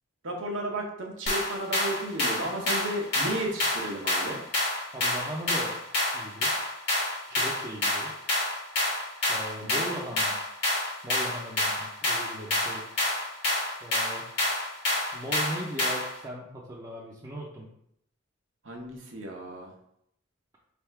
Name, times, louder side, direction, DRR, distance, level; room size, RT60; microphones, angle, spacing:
voice 1, 0.2-4.4 9.6-9.9 18.6-19.7, right 1 dB, 75° right, 1 dB, 0.9 m, -33 dB
sound 1, 1.3-16.2, left 1 dB, 60° left, 1.6 m, -28 dB
voice 2, 4.9-5.8 6.1-6.5 7.3-8.1 9.3-10.4 11.0-12.9 13.8-14.3 15.1-17.7, right 1 dB, 20° right, -7 dB, 0.6 m, -38 dB
3.5 x 2.4 x 4.5 m, 0.73 s
head